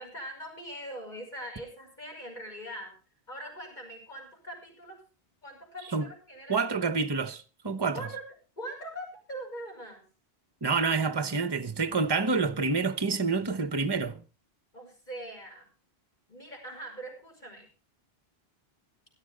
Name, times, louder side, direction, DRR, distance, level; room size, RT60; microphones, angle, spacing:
voice 1, 0.0-3.0 3.3-5.0 5.4-6.6 7.9-8.2 8.6-10.1 14.7-15.7 16.3-17.7, right 1 dB, 45° left, 5.8 m, -42 dB
voice 2, 6.5-8.0 10.6-14.2, right 4 dB, 25° right, 0.8 m, -28 dB
16.5 x 13.0 x 3.6 m
omnidirectional pair, 1.1 m